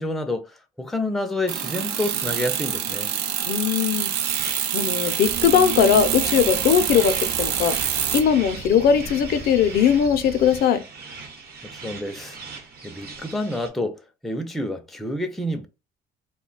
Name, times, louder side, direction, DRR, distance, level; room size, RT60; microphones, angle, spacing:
voice 1, 0.0-3.1 11.6-12.4 12.8-15.7, left 1 dB, ahead, 0.4 m, -29 dB
sound 1, 1.5-8.2, right 9 dB, 85° right, 0.4 m, -26 dB
voice 2, 3.5-4.1 4.4-7.8 8.1-10.8, left 8 dB, 65° left, 0.4 m, -20 dB
sound 2, 4.0-13.7, right 4 dB, 70° right, 0.9 m, -40 dB
Cricket, 5.2-10.6, right 3 dB, 40° right, 0.6 m, -38 dB
2.3 x 2.1 x 3.8 m
cardioid pair, 110°, 17 cm